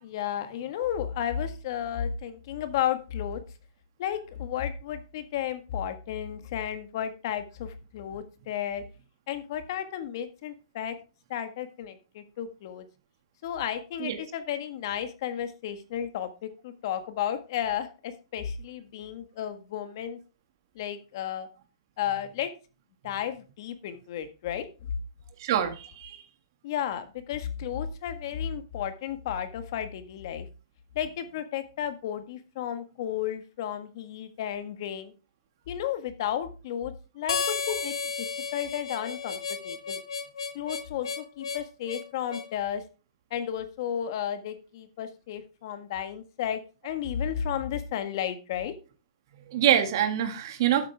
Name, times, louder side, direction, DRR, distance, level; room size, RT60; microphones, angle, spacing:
voice 1, 0.0-3.4 4.0-8.8 9.3-11.0 11.3-12.8 13.4-20.2 20.7-21.5 22.0-22.5 23.0-24.7 26.6-30.4 30.9-35.1 35.7-38.3 38.5-40.0 40.5-42.8 43.3-48.7, left 9 dB, 50° left, 10 dB, 1.6 m, -33 dB
voice 2, 25.4-26.2 49.5-50.9, right 10 dB, 50° right, 7 dB, 2.0 m, -25 dB
Harmonica, 37.3-42.5, left 5 dB, 85° left, 1.2 m, -33 dB
12.0 x 8.5 x 3.5 m, 0.33 s
hypercardioid pair, 160°, 3 cm